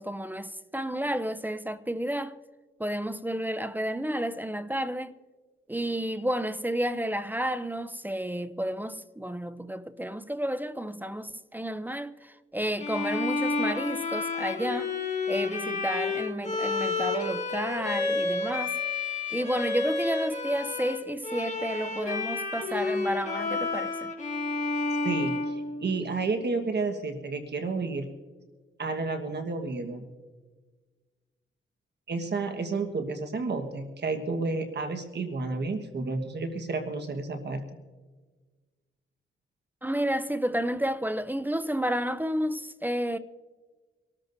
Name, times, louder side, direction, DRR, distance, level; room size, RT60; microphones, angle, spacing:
voice 1, 0.0-2.4 2.8-5.1 5.7-14.9 15.3-18.8 19.3-24.1 39.8-43.2, equal, 10° right, 0.5 m, -31 dB
Bowed string instrument, 12.8-26.3, left 3 dB, 35° left, 2.1 m, -30 dB
voice 2, 25.0-28.0 28.8-30.0 32.1-37.6, right 3 dB, 55° right, 1.4 m, -31 dB
25.0 x 13.5 x 2.7 m
cardioid pair, 85°, 21 cm